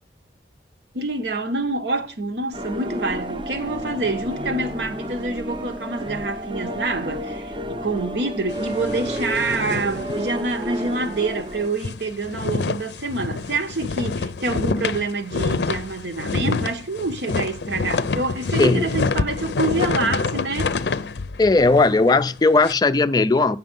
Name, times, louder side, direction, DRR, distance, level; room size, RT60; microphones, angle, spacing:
voice 1, 0.9-20.7, right 3 dB, 80° right, 1.0 m, -27 dB
sound 1, 2.5-11.7, equal, 30° right, 0.6 m, -31 dB
sound 2, 8.5-10.8 11.1-11.2 11.6-22.7, left 4 dB, 75° left, 0.5 m, -27 dB
voice 2, 18.6-18.9 21.4-23.6, left 3 dB, 20° left, 0.3 m, -17 dB
8.9 x 6.0 x 5.2 m
head